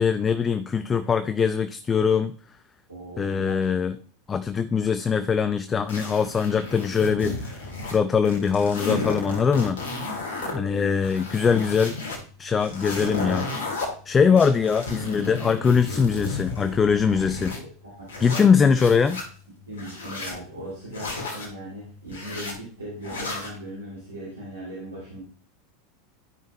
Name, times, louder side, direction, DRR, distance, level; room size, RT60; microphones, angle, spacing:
voice 1, 0.0-2.3 3.2-4.0 4.3-9.8 10.5-12.0 12.4-13.5 14.1-17.5 18.2-19.2, left 6 dB, 25° left, 11 dB, 0.4 m, -22 dB
voice 2, 2.9-4.0 10.4-10.9 14.2-14.6 17.5-18.4 19.7-25.2, right 1 dB, 85° right, -5 dB, 2.2 m, -39 dB
sound 1, 5.9-8.0 8.3-10.5 11.0-12.2 12.6-13.9 14.4-17.6 18.1-19.2 19.7-20.4 20.9-21.5 22.1-22.5 23.0-23.6, left 3 dB, 70° left, 2.0 m, -33 dB
12.0 x 5.5 x 2.3 m, 0.43 s
figure-of-eight pair, 85°, 0 cm